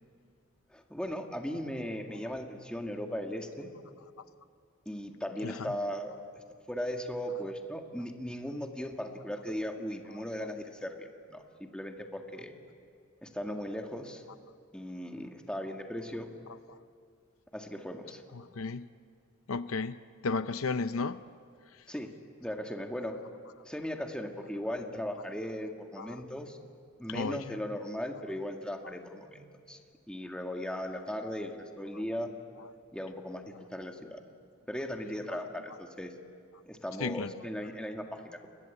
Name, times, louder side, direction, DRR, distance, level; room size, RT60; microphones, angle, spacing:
voice 1, 0.7-3.7 4.9-12.5 13.2-14.2 14.7-16.3 17.5-18.2 21.9-22.1 22.4-23.2 23.7-26.6 27.0-29.8 30.1-32.3 32.9-33.4 33.7-34.2 34.7-36.1 36.7-38.5, equal, 5° left, 3 dB, 2.0 m, -37 dB
voice 2, 5.4-5.7 18.3-18.9 19.5-20.0 20.2-21.2 26.0-26.2 27.1-27.4 37.0-37.3, left 4 dB, 75° left, 13 dB, 0.7 m, -33 dB
29.5 x 22.0 x 8.4 m, 2.3 s
head